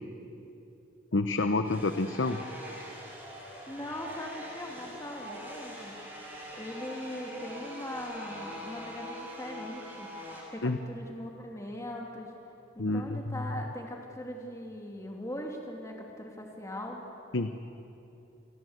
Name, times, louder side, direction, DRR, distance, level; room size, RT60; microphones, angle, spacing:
voice 1, 1.1-2.4 10.6-10.8 12.8-13.4 17.3-17.5, left 2 dB, 75° left, 9 dB, 0.9 m, -28 dB
sound 1, 1.6-10.4, equal, 10° right, 7.2 m, -43 dB
voice 2, 3.4-6.0 6.5-10.1 10.5-12.3 12.7-17.0, left 1 dB, 15° left, 0 dB, 2.5 m, -40 dB
28.5 x 21.0 x 8.0 m, 2.9 s
head